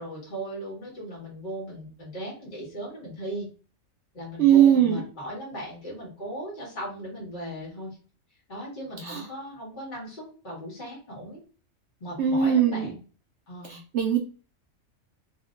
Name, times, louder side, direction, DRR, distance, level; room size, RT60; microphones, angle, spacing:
voice 1, 0.0-3.5 4.1-8.0 8.5-11.4 12.0-13.0 13.5-13.8, equal, 35° left, -5 dB, 1.7 m, -37 dB
voice 2, 4.4-5.0 9.0-9.3 12.2-12.9 13.7-14.2, right 9 dB, 65° right, 3 dB, 0.7 m, -20 dB
4.2 x 2.9 x 2.5 m, 0.37 s
omnidirectional pair, 1.4 m